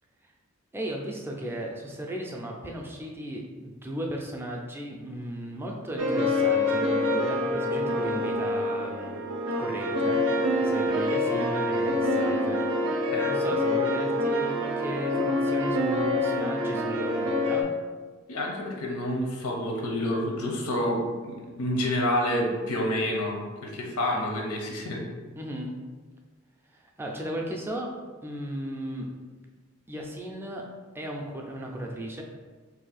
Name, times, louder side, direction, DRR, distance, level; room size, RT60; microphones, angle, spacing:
voice 1, 0.7-9.2 9.6-10.2 10.6-12.7 13.0-17.7 25.4-25.7 26.7-27.9 28.2-29.1 29.9-30.7 30.9-32.2, right 1 dB, 10° right, 0 dB, 0.4 m, -35 dB
sound 1, 6.0-17.6, left 1 dB, 75° right, 0.5 m, -26 dB
voice 2, 18.3-23.3 23.6-25.0, left 1 dB, 90° left, 0 dB, 0.6 m, -28 dB
2.6 x 2.3 x 4.0 m, 1.4 s
head